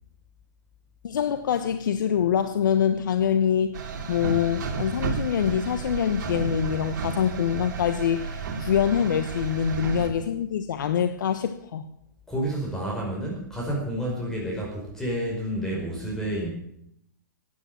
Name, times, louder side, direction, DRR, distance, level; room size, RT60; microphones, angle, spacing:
voice 1, 1.0-3.8 4.1-11.9, left 8 dB, 70° left, 9 dB, 1.1 m, -25 dB
sound 1, 3.7-10.1, right 5 dB, 55° right, 2.9 m, -32 dB
voice 2, 12.3-16.5, right 1 dB, 5° left, -3 dB, 4.9 m, -30 dB
15.0 x 9.8 x 7.6 m, 0.73 s
hypercardioid pair, 135°, 11 cm